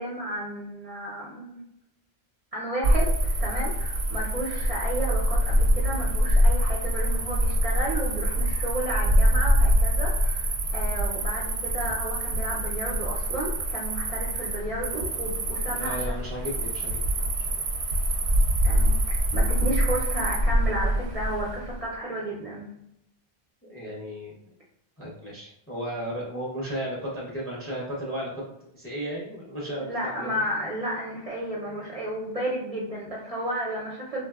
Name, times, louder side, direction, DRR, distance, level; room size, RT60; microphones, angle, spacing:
voice 1, 0.0-1.6 2.5-16.2 18.6-22.7 29.9-34.2, right 1 dB, 45° right, -5 dB, 0.5 m, -32 dB
Cricket, 2.8-21.8, equal, 90° right, 0.9 m, -25 dB
voice 2, 15.7-17.6 23.6-24.4 25.0-28.4 28.7-30.5, equal, 20° left, -4 dB, 0.4 m, -35 dB
3.0 x 2.0 x 2.3 m, 0.80 s
omnidirectional pair, 1.1 m